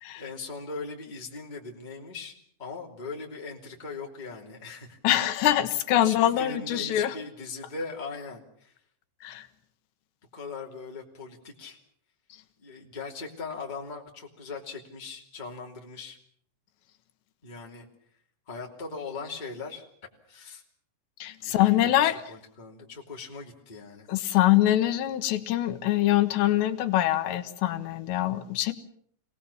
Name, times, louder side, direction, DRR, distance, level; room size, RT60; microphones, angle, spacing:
voice 1, 0.2-2.3 2.6-5.0 6.0-8.7 10.3-11.8 12.6-16.2 17.4-17.9 18.5-19.8 20.3-20.6 21.4-24.1, left 4 dB, 15° left, 0 dB, 2.1 m, -39 dB
voice 2, 5.0-7.2 9.2-9.5 21.2-22.2 24.1-28.7, left 13 dB, 80° left, 9 dB, 3.2 m, -24 dB
26.0 x 18.5 x 7.1 m, 0.63 s
omnidirectional pair, 5.0 m